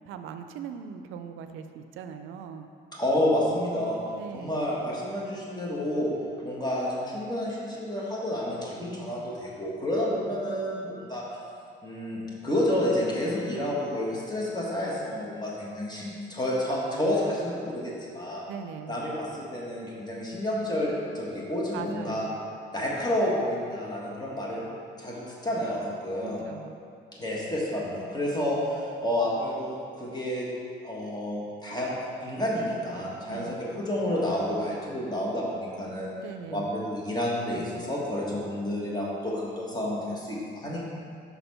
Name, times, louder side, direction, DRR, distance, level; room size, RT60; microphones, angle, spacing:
voice 1, 0.1-2.7 4.1-4.7 10.3-10.4 18.5-19.0 21.7-22.3 26.2-26.7 33.3-33.6 36.2-36.7 38.6-38.7, right 7 dB, 90° right, 8 dB, 0.4 m, -40 dB
voice 2, 2.9-4.0 4.3-6.1 6.4-11.2 11.8-18.4 18.9-22.3 22.7-24.6 25.0-26.4 27.2-30.4 30.8-31.9 32.2-36.1 36.5-40.8, left 1 dB, 20° left, -5 dB, 1.7 m, -30 dB
5.7 x 4.3 x 5.5 m, 2.4 s
cardioid pair, 90°, 20 cm